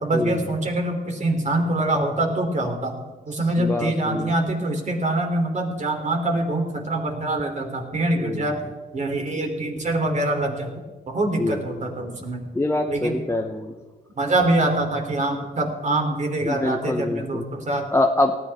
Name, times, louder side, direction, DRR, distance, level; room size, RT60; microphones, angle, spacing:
voice 1, 0.0-8.6 8.9-10.7 11.1-12.4 12.9-13.2 14.2-17.9, right 2 dB, 35° right, 3 dB, 3.2 m, -24 dB
voice 2, 3.6-4.3 8.1-8.5 11.4-11.8 12.5-13.7 16.4-17.4 17.9-18.4, left 2 dB, 15° left, 4 dB, 0.8 m, -25 dB
19.0 x 14.0 x 3.6 m, 1.3 s
cardioid pair, 90°, 20 cm